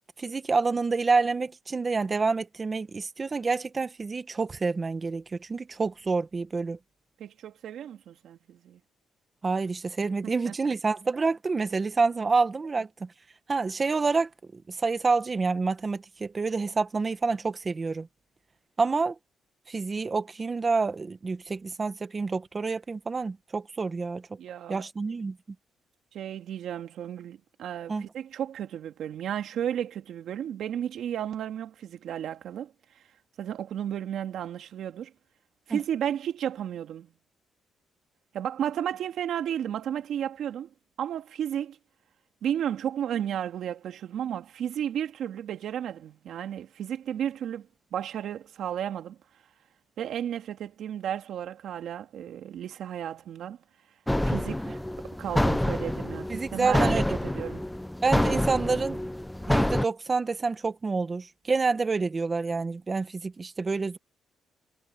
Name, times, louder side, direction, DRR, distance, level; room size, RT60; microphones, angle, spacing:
voice 1, 0.2-6.8 9.4-13.1 13.5-18.1 18.8-19.1 19.7-24.3 24.7-25.4 27.9-28.0 35.7-35.8 54.7-54.8 56.3-57.0 58.0-59.0 59.5-64.0, right 4 dB, 30° right, 1.5 m, -28 dB
voice 2, 7.2-8.8 10.2-10.5 24.4-24.8 26.1-32.7 33.4-35.1 35.7-37.1 38.3-40.7 41.0-41.8 42.4-47.7 47.9-49.2 50.0-53.6 54.2-57.7, right 10 dB, 70° right, 2.1 m, -33 dB
sound 1, 54.1-59.8, left 1 dB, 5° left, 0.6 m, -27 dB
cardioid pair, 90°, 0 cm